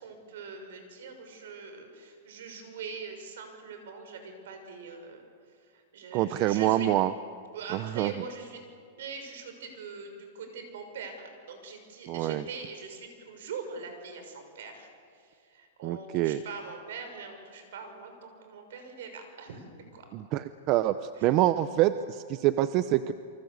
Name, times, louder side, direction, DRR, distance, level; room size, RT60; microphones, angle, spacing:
voice 1, 0.0-5.2 5.7-6.9 7.5-8.6 9.0-14.9 15.1-19.6 19.9-20.0 21.2-21.3, right 5 dB, 70° right, 6 dB, 6.5 m, -43 dB
voice 2, 6.1-7.1 7.7-8.1 12.1-12.4 15.8-16.4 20.1-21.0 21.2-23.1, right 14 dB, 35° right, 12 dB, 0.7 m, -26 dB
29.0 x 24.5 x 8.2 m, 2.2 s
supercardioid pair, 160°, 0 cm